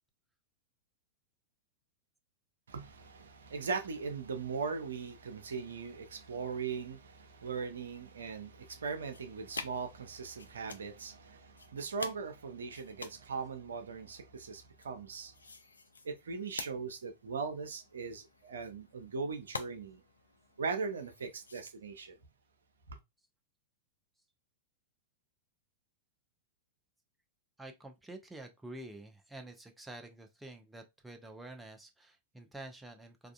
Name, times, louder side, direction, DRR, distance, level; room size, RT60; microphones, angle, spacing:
voice 1, 2.7-15.3 16.0-20.0 20.6-22.2 22.9-23.0, right 5 dB, 65° right, 0.6 m, -39 dB
sound 1, 8.6-21.7, left 4 dB, 75° left, 0.3 m, -50 dB
voice 2, 27.6-33.3, right 2 dB, 5° right, 0.5 m, -48 dB
3.5 x 2.4 x 2.3 m
figure-of-eight pair, 95°, 0 cm